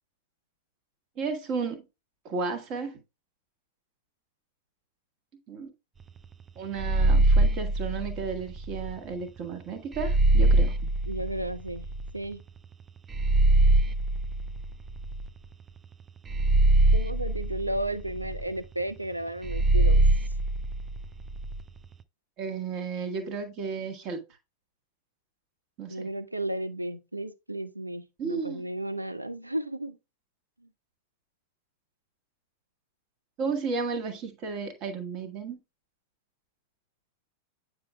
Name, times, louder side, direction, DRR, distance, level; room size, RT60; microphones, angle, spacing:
voice 1, 1.2-1.8 2.2-3.0 5.5-5.7 6.5-10.9 22.4-24.2 25.8-26.1 28.2-28.6 33.4-35.6, right 5 dB, 40° right, 1.3 m, -33 dB
sound 1, 6.8-8.9 9.9-12.1 13.1-15.5 16.3-18.4 19.4-21.6, right 2 dB, 20° right, 0.4 m, -23 dB
voice 2, 11.1-11.9 12.1-12.4 16.9-20.0 25.9-30.0 30.6-30.7, right 1 dB, 85° right, 0.6 m, -33 dB
8.8 x 5.3 x 2.3 m
figure-of-eight pair, 90°, 0 cm